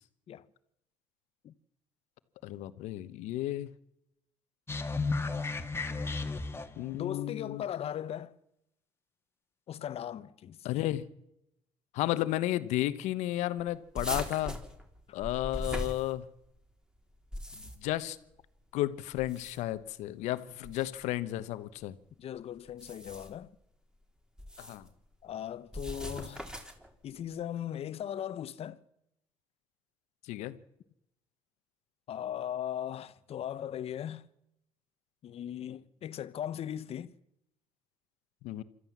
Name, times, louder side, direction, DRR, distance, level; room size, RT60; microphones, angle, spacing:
voice 1, 2.4-3.7 6.8-7.6 10.6-11.0 11.9-14.6 15.1-16.2 17.8-18.2 18.7-21.9 24.6-24.9 30.3-30.5 38.4-38.6, left 15 dB, 80° left, 1.1 m, -33 dB
sound 1, 4.7-7.0, left 3 dB, 20° left, 1.9 m, -33 dB
voice 2, 6.9-8.3 9.7-10.7 15.1-15.2 22.2-23.5 25.2-26.5 27.0-28.8 32.1-34.3 35.2-37.1, left 10 dB, 60° left, 1.1 m, -38 dB
sound 2, 13.9-16.6 17.1-18.0 19.1-19.8 20.6-20.9 22.7-23.4 24.4-24.9 25.7-26.9, equal, 5° right, 3.6 m, -40 dB
27.0 x 13.0 x 7.4 m
supercardioid pair, 75°, 12 cm